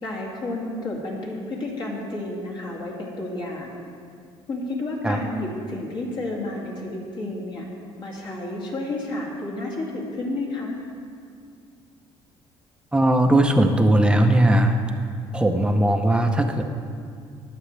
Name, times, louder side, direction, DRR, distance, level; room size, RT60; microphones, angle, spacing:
voice 1, 0.0-3.7 4.5-7.7 8.0-10.8, left 2 dB, 50° left, -3 dB, 2.6 m, -31 dB
voice 2, 12.9-14.8 15.3-16.6, right 1 dB, 10° right, 4 dB, 0.7 m, -18 dB
21.0 x 7.7 x 3.3 m, 2.3 s
cardioid pair, 140°, 11 cm